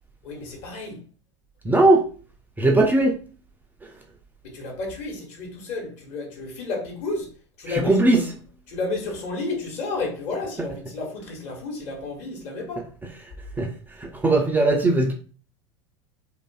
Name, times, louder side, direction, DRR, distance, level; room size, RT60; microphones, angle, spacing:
voice 1, 0.2-1.0 4.4-7.3 7.6-8.2 8.7-12.9, left 3 dB, 50° left, 1.0 m, -31 dB
voice 2, 1.6-2.0 2.6-3.2 7.7-8.2 13.6-13.7 14.0-15.1, right 2 dB, 10° right, 0.3 m, -19 dB
2.5 x 2.3 x 2.2 m
figure-of-eight pair, 80°, 15 cm